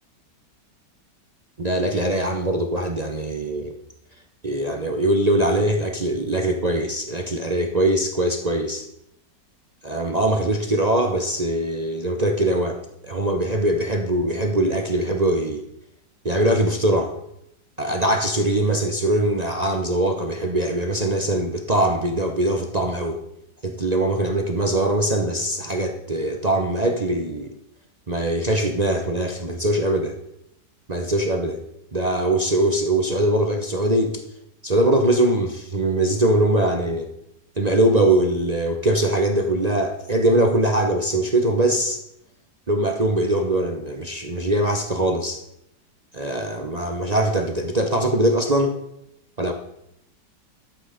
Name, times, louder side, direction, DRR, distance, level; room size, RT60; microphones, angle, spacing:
voice 1, 1.6-3.7 4.4-8.8 9.8-15.6 16.2-17.1 17.8-23.2 23.6-27.5 28.1-30.1 30.9-31.6 31.9-34.2 34.6-37.1 37.6-42.0 42.7-45.4 46.1-48.8 49.4-49.5, right 1 dB, 35° right, 3 dB, 0.6 m, -22 dB
12.0 x 8.0 x 5.0 m, 0.80 s
omnidirectional pair, 1.9 m